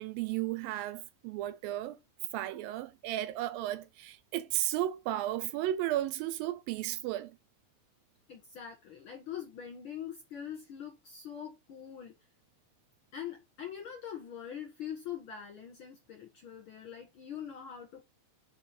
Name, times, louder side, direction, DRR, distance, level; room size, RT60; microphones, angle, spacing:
voice 1, 0.0-2.0 2.3-7.4, right 14 dB, 80° right, 2.3 m, -34 dB
voice 2, 8.3-12.1 13.1-18.1, left 9 dB, 55° left, 1.6 m, -43 dB
5.0 x 4.8 x 5.8 m
omnidirectional pair, 4.2 m